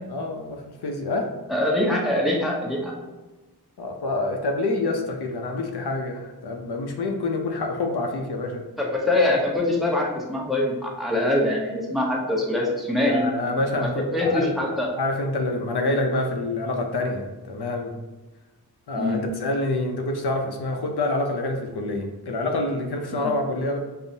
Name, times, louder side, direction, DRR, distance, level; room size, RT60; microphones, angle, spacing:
voice 1, 0.1-1.3 3.8-8.6 12.6-12.7 13.0-14.5 15.0-17.9 18.9-23.8, left 2 dB, 75° left, 3 dB, 0.6 m, -27 dB
voice 2, 1.5-2.9 8.8-13.2 13.7-14.9 19.0-19.2 23.2-23.3, left 1 dB, ahead, -2 dB, 0.7 m, -24 dB
5.3 x 2.0 x 2.6 m, 1.2 s
wide cardioid pair, 80°, 40 cm